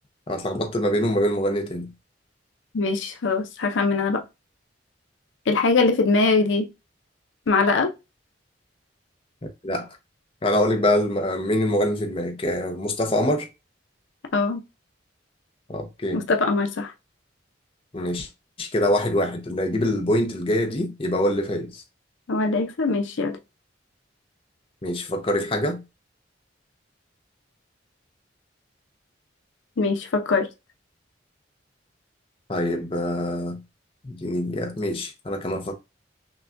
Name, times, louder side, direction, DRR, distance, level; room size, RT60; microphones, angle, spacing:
voice 1, 0.3-1.9 9.6-9.9 10.4-13.5 15.7-16.2 17.9-18.3 18.6-21.8 24.8-25.8 32.5-33.6 34.0-35.7, left 1 dB, 30° left, 0.6 m, -24 dB
voice 2, 2.7-4.2 5.5-6.7 7.5-7.9 14.3-14.6 16.1-16.9 22.3-23.4 29.8-30.5, left 3 dB, 80° left, 0.6 m, -22 dB
5.8 x 2.2 x 2.5 m
head